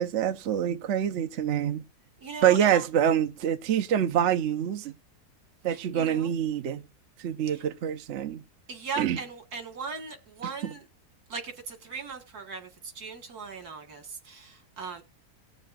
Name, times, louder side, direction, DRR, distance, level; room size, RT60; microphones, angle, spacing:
voice 1, 0.0-1.8 2.4-4.9 5.6-6.8 7.2-8.4 9.0-9.2 10.6-10.7, right 9 dB, 60° right, 0.9 m, -26 dB
voice 2, 2.2-2.9 5.7-6.3 7.5-7.6 8.7-10.9 11.3-15.0, right 5 dB, 75° right, 2.2 m, -38 dB
18.5 x 6.6 x 2.5 m
omnidirectional pair, 1.6 m